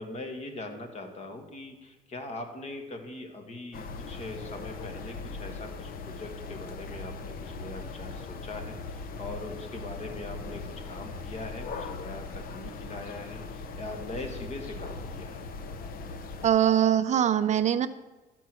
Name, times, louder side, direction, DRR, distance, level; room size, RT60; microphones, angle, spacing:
voice 1, 0.0-15.4, left 2 dB, 40° left, 5 dB, 1.8 m, -41 dB
sound 1, 3.7-16.5, left 3 dB, 60° left, 0.8 m, -39 dB
voice 2, 16.4-17.9, right 10 dB, 45° right, 12 dB, 0.5 m, -22 dB
13.0 x 4.6 x 7.6 m, 1.2 s
cardioid pair, 110°, 17 cm